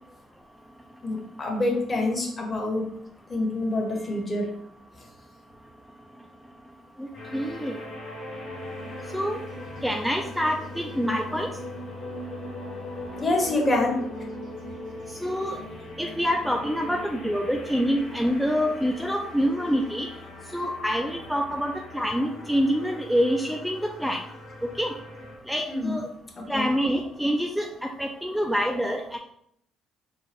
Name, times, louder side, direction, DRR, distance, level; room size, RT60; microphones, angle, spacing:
voice 1, 1.0-2.8 3.3-4.5 13.2-14.0 25.6-26.0 26.5-26.7, left 2 dB, 35° left, 0 dB, 1.4 m, -26 dB
sound 1, 7.1-25.4, left 1 dB, 75° left, 1.5 m, -40 dB
voice 2, 7.3-7.7 9.1-9.4 9.8-11.5 15.2-15.6 16.0-20.1 20.5-24.2 24.6-24.9 25.5-26.0 26.5-29.2, equal, ahead, 2 dB, 0.4 m, -26 dB
4.5 x 2.4 x 3.5 m, 0.73 s
supercardioid pair, 75°, 0 cm